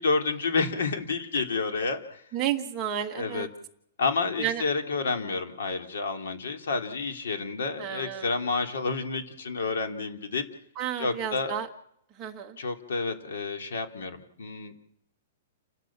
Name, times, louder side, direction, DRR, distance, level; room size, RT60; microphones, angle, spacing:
voice 1, 0.0-2.2 3.2-3.5 4.0-10.4 11.0-11.6 12.6-14.7, left 4 dB, 85° left, 5 dB, 3.2 m, -29 dB
voice 2, 2.3-3.5 4.4-4.6 7.8-8.4 10.7-11.7 12.1-12.6, right 10 dB, 15° right, 2 dB, 1.4 m, -31 dB
29.5 x 12.0 x 7.4 m, 0.73 s
hypercardioid pair, 175°, 0 cm